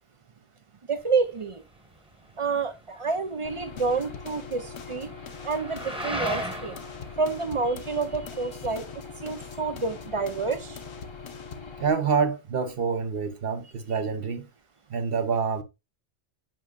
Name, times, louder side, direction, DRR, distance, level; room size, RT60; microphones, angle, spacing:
voice 1, 0.9-1.6 2.4-5.1 5.4-6.8 7.2-8.9 9.2-10.8, right 4 dB, 35° right, 0.6 m, -28 dB
sound 1, 1.0-10.9, equal, 5° right, 1.1 m, -40 dB
Aircraft / Engine, 3.4-11.9, left 5 dB, 25° left, 0.9 m, -42 dB
sound 2, 3.8-11.8, left 6 dB, 75° left, 1.1 m, -46 dB
voice 2, 11.8-14.5 14.9-15.6, right 5 dB, 60° right, 1.1 m, -27 dB
8.9 x 6.2 x 2.4 m
omnidirectional pair, 1.1 m